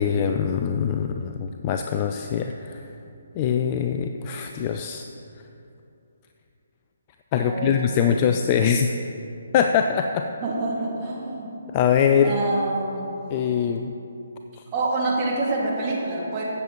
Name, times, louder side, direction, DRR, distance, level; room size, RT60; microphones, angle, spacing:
voice 1, 0.0-2.8 3.4-5.1 7.3-8.9 9.5-10.3 11.7-12.3 13.3-13.9, left 8 dB, 25° left, 5 dB, 0.3 m, -23 dB
voice 2, 7.4-8.3 10.4-11.6 12.2-13.2 14.7-16.4, right 2 dB, 25° right, -4 dB, 2.0 m, -27 dB
16.0 x 7.4 x 3.0 m, 2.8 s
figure-of-eight pair, 140°, 0 cm